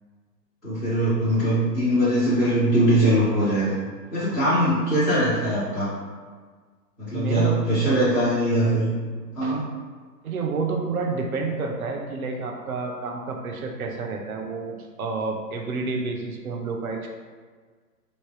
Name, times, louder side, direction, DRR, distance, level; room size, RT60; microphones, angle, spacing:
voice 1, 0.6-3.7 4.1-5.9 7.0-8.9 9.3-9.7, right 1 dB, 5° left, -22 dB, 0.6 m, -21 dB
voice 2, 4.2-4.6 7.1-7.5 9.4-9.6 10.2-17.1, right 4 dB, 60° right, 1 dB, 0.7 m, -30 dB
3.3 x 2.7 x 4.4 m, 1.5 s
hypercardioid pair, 160°, 49 cm